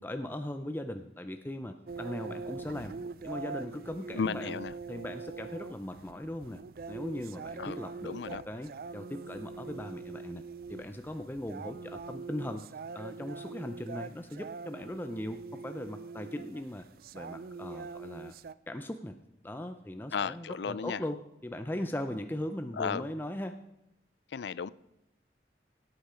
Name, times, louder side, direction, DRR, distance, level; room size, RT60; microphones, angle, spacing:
voice 1, 0.0-2.9 3.2-4.6 4.9-6.6 6.9-16.8 17.1-18.4 18.7-19.2 19.4-23.6, left 1 dB, 10° left, 0.5 m, -39 dB
sound 1, 1.9-18.5, right 4 dB, 55° right, 0.3 m, -43 dB
voice 2, 4.1-4.7 7.6-7.8 8.1-8.4 20.1-21.0 22.8-23.1 24.3-24.7, left 6 dB, 80° left, 0.4 m, -34 dB
17.0 x 8.8 x 5.0 m
head